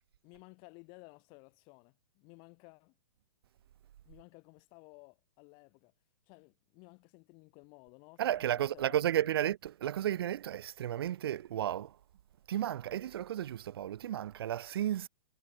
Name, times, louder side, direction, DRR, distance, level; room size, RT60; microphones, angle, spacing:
voice 1, 0.2-2.9 4.0-5.9 6.3-9.5, left 32 dB, 40° left, 4.2 m, -56 dB
voice 2, 8.2-11.9 12.5-15.1, right 11 dB, 70° right, 0.9 m, -33 dB
hypercardioid pair, 135°, 13 cm